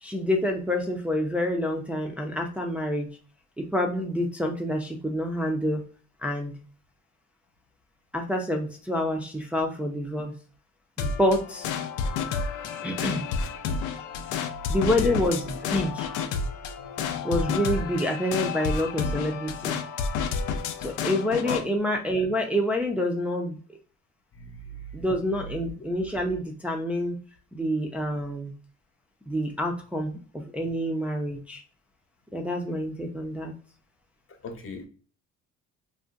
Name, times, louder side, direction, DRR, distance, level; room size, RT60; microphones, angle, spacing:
voice 1, 0.0-3.1 3.6-5.8 6.2-6.5 8.1-10.3 11.0-11.7 12.8-13.3 14.7-16.1 17.2-19.8 20.8-23.6 24.9-27.2 27.5-28.5 29.3-31.6 32.3-33.5, left 1 dB, 5° right, 1 dB, 0.4 m, -27 dB
sound 1, 11.0-21.6, left 5 dB, 90° left, 0.5 m, -30 dB
voice 2, 16.8-17.4 21.4-21.6 24.3-24.8 34.4-34.9, left 3 dB, 45° left, 5 dB, 0.8 m, -37 dB
2.5 x 2.1 x 3.8 m, 0.42 s
cardioid pair, 90°, 30 cm